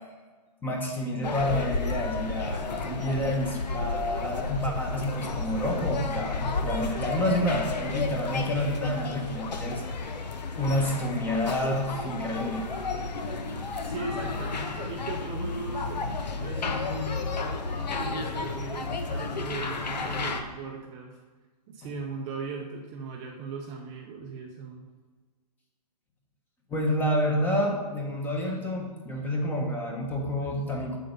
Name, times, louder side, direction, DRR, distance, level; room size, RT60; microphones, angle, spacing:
voice 1, 0.6-10.1 10.6-12.7 13.2-13.7 26.7-31.0, left 1 dB, 10° left, 1 dB, 1.2 m, -29 dB
sound 1, 1.2-20.4, left 3 dB, 80° left, 1.3 m, -32 dB
voice 2, 13.8-17.3 17.9-21.2 21.7-24.9, right 4 dB, 20° right, 0 dB, 0.7 m, -38 dB
8.0 x 7.7 x 5.4 m, 1.4 s
hypercardioid pair, 155°, 21 cm